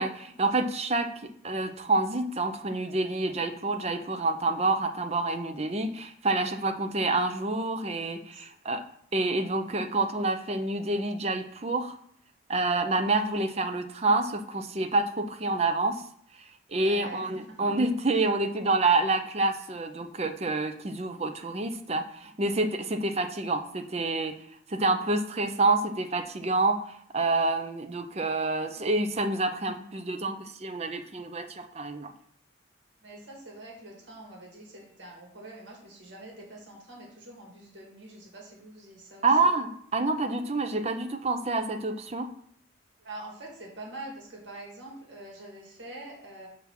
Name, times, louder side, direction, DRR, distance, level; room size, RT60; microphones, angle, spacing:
voice 1, 0.0-8.8 9.1-12.0 12.5-16.0 16.7-24.3 24.7-32.1 39.2-42.3, right 2 dB, 30° right, 7 dB, 0.6 m, -28 dB
voice 2, 16.7-17.7 33.0-39.5 43.0-46.5, right 1 dB, 65° right, -2 dB, 2.0 m, -45 dB
5.7 x 3.6 x 5.9 m, 0.65 s
head